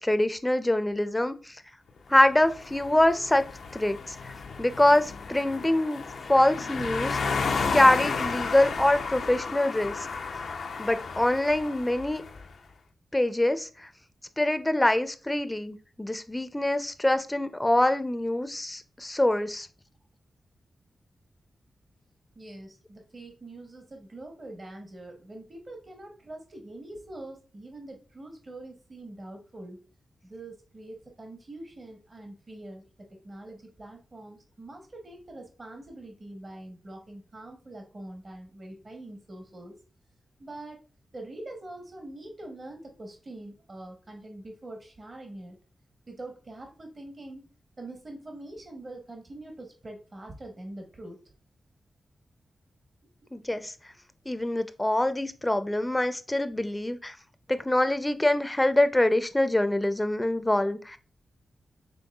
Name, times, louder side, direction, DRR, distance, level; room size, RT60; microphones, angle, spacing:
voice 1, 0.0-1.6 2.1-3.4 3.7-6.0 6.3-7.2 7.7-9.9 10.8-12.2 13.1-13.9 14.4-19.7 53.3-53.7 54.3-57.2 57.5-61.0, left 1 dB, 15° left, 10 dB, 0.4 m, -24 dB
sound 1, 2.2-12.5, left 4 dB, 80° left, 0.5 m, -33 dB
voice 2, 22.3-29.8 30.2-32.8 33.1-39.7 40.4-40.8 41.1-45.6 46.1-47.5 47.8-51.2, right 1 dB, 45° right, 3 dB, 1.0 m, -44 dB
5.4 x 3.4 x 2.3 m, 0.37 s
cardioid pair, 60°, 0 cm